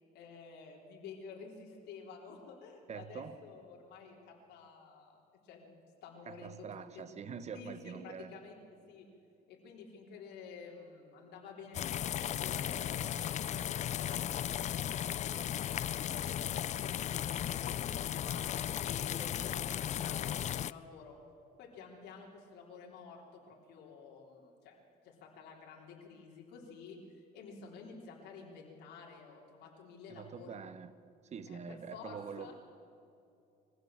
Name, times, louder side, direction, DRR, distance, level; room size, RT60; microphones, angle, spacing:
voice 1, 0.1-7.1 7.5-8.6 8.9-9.0 9.5-18.4 18.8-21.2 21.6-24.8 25.0-30.6 31.5-32.5, left 5 dB, 80° left, -1 dB, 3.6 m, -51 dB
voice 2, 2.9-3.4 6.3-8.3 30.1-30.9 31.3-32.5, right 6 dB, 40° right, 12 dB, 1.2 m, -45 dB
sound 1, 11.7-20.7, left 10 dB, 45° left, 0.4 m, -36 dB
22.5 x 16.0 x 7.5 m, 2.6 s
cardioid pair, 110°, 17 cm